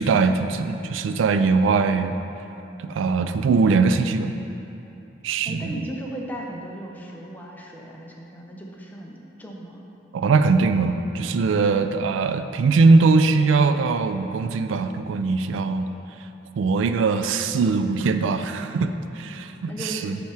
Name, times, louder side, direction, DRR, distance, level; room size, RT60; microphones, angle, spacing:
voice 1, 0.0-2.2 2.8-4.3 5.2-5.7 10.1-15.9 16.6-20.2, right 4 dB, 80° right, 9 dB, 0.3 m, -21 dB
voice 2, 5.4-9.1 9.4-9.8 19.7-20.1, equal, 10° left, -2 dB, 0.6 m, -36 dB
7.1 x 3.5 x 4.6 m, 2.9 s
head